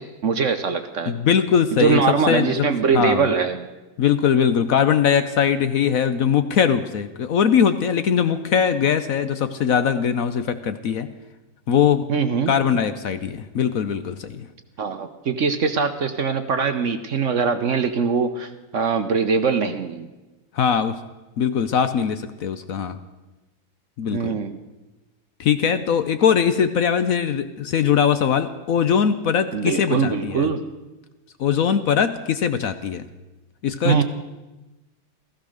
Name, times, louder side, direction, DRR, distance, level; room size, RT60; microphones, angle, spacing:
voice 1, 0.0-1.1 1.8-3.7 12.1-12.5 14.8-20.1 24.1-24.5 29.5-30.6 33.8-34.0, right 5 dB, 55° right, 9 dB, 1.0 m, -22 dB
voice 2, 1.1-2.7 2.9-3.3 4.0-11.1 11.7-12.1 12.5-14.5 20.5-21.0 21.4-23.0 24.0-24.3 25.4-30.5 31.4-33.0 33.6-34.0, left 7 dB, 60° left, 11 dB, 1.0 m, -21 dB
15.5 x 14.5 x 6.5 m, 1.1 s
omnidirectional pair, 1.9 m